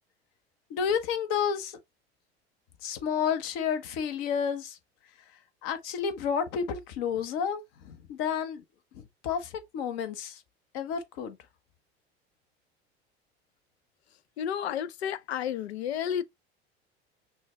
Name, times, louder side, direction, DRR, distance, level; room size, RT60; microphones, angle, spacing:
voice 1, 0.7-1.8 2.8-4.8 5.6-8.6 8.9-10.4 10.7-11.4, left 7 dB, 60° left, 1.1 m, -31 dB
voice 2, 14.4-16.2, left 9 dB, 80° left, 0.5 m, -31 dB
6.1 x 2.3 x 3.2 m
hypercardioid pair, 75°, 32 cm